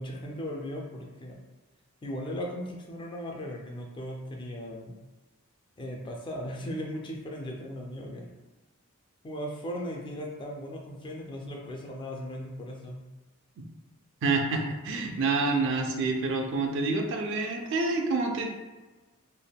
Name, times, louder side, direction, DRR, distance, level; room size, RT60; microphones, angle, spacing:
voice 1, 0.0-1.4 2.0-5.0 5.8-8.3 9.2-13.1, equal, 20° left, 0 dB, 0.3 m, -37 dB
voice 2, 14.2-18.5, right 3 dB, 55° right, 3 dB, 0.4 m, -28 dB
3.3 x 2.1 x 2.3 m, 1.2 s
head